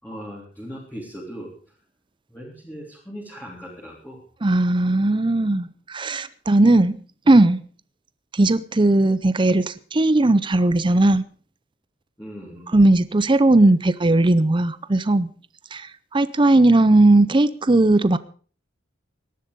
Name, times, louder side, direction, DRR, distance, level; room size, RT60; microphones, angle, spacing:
voice 1, 0.0-1.5 2.3-4.2 12.2-12.7, equal, 10° left, -5 dB, 3.5 m, -38 dB
voice 2, 4.4-6.9 7.3-7.6 8.3-11.2 12.7-15.3 15.7-15.9 16.1-18.2, right 2 dB, 25° right, 15 dB, 0.6 m, -17 dB
18.0 x 11.5 x 5.2 m, 0.42 s
head